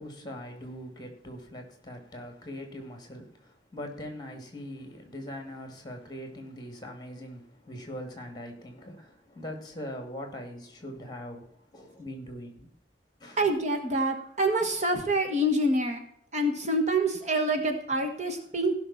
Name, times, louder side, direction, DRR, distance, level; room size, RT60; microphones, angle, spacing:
voice 1, 0.0-12.7 13.2-13.4, equal, 25° left, 4 dB, 2.4 m, -41 dB
voice 2, 13.4-16.0 16.3-18.7, right 1 dB, 40° right, 5 dB, 1.5 m, -26 dB
16.5 x 6.0 x 4.2 m, 0.66 s
head